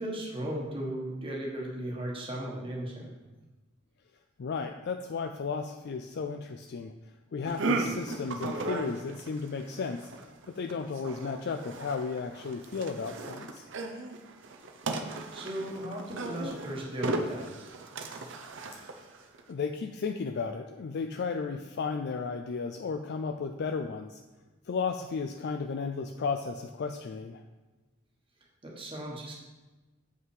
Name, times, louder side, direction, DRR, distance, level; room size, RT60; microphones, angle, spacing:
voice 1, 0.0-3.1 15.0-17.7 28.6-29.3, right 1 dB, 25° right, -3 dB, 1.4 m, -36 dB
voice 2, 4.4-6.9 7.3-10.0 10.5-13.7 19.5-24.2 24.6-27.4, left 5 dB, 55° left, 6 dB, 0.4 m, -34 dB
sound 1, 7.4-19.4, right 2 dB, 65° right, 0.8 m, -36 dB
7.6 x 5.6 x 4.8 m, 1.2 s
head